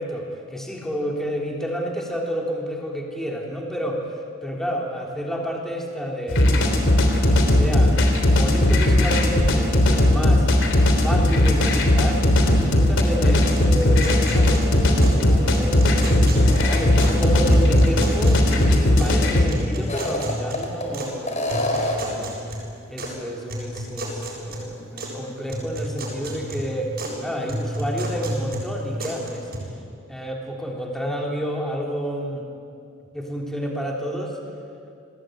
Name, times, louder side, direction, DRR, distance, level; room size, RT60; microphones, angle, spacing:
voice 1, 0.0-4.1 4.4-10.5 10.9-12.2 12.6-22.4 22.9-26.9 27.2-29.5 30.1-32.5 33.1-34.4, equal, ahead, -1 dB, 3.2 m, -30 dB
sound 1, 6.3-19.5, left 1 dB, 60° left, 3.5 m, -18 dB
sound 2, 13.6-15.2 15.5-17.2 17.5-19.2 19.5-21.1 21.5-23.1 23.5-25.2 25.5-27.2 27.5-29.6, right 1 dB, 45° right, 7.3 m, -32 dB
sound 3, 16.4-17.4 17.8-17.9 19.7-20.9 21.3-22.2, left 1 dB, 35° left, 4.5 m, -27 dB
29.5 x 20.5 x 9.2 m, 2.4 s
head